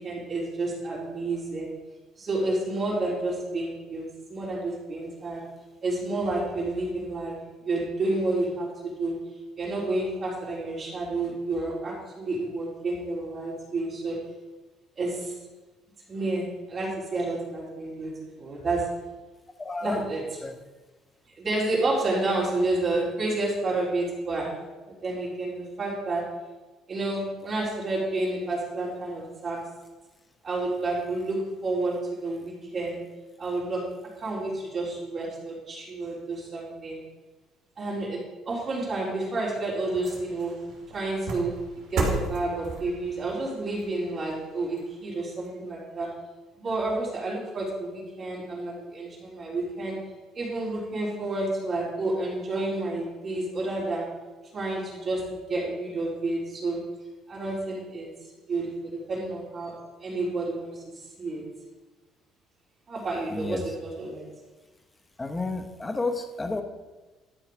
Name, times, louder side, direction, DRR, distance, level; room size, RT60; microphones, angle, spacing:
voice 1, 0.0-1.7 2.2-5.4 5.8-7.4 7.6-9.1 9.6-14.2 15.0-15.4 16.1-18.1 18.4-18.9 19.8-20.2 21.4-24.5 24.9-26.2 26.9-29.6 30.4-33.0 33.4-33.8 34.2-37.0 37.8-40.6 40.9-46.1 46.6-50.0 50.3-54.1 54.5-56.8 57.3-58.1 58.5-59.7 60.0-60.8 61.2-61.4 62.9-64.3, right 2 dB, 35° right, -6 dB, 3.8 m, -30 dB
voice 2, 19.6-20.0 20.4-20.5 63.3-63.7 65.2-66.6, left 3 dB, 15° left, 6 dB, 1.0 m, -30 dB
sound 1, 39.0-45.5 45.9-46.0, right 3 dB, 70° right, 2.8 m, -36 dB
12.0 x 5.8 x 5.0 m, 1.2 s
cardioid pair, 115°, 0 cm